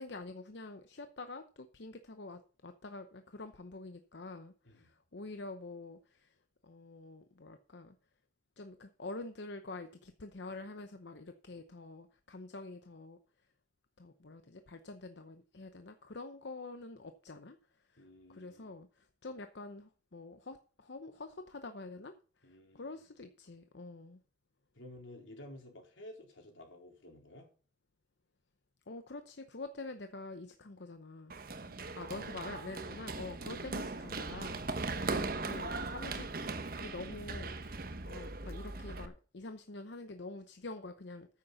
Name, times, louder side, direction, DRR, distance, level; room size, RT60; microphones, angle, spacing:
voice 1, 0.0-6.3 6.6-8.0 8.6-13.2 14.0-17.6 17.9-18.0 18.3-22.1 22.4-24.2 28.9-31.3 31.9-34.6 35.1-36.3 36.8-41.3, left 2 dB, 65° left, 8 dB, 0.8 m, -46 dB
voice 2, 18.0-18.7 22.4-23.0 24.7-27.5 31.5-32.1 33.3-33.6, left 1 dB, 90° left, 1 dB, 4.0 m, -53 dB
Run, 31.3-39.1, right 3 dB, 50° right, 1.1 m, -39 dB
9.8 x 8.4 x 5.6 m, 0.38 s
head